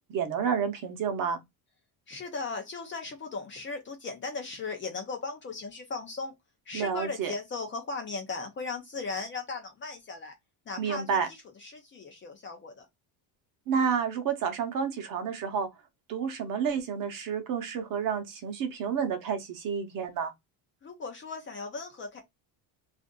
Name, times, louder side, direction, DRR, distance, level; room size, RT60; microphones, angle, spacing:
voice 1, 0.1-1.4 6.7-7.3 10.8-11.3 13.7-15.7 16.1-20.3, right 6 dB, 45° right, 0.8 m, -30 dB
voice 2, 2.1-6.3 6.7-10.3 10.7-12.9 20.8-22.2, left 4 dB, 25° left, 0.5 m, -37 dB
2.5 x 2.5 x 3.7 m
cardioid pair, 175°, 45 cm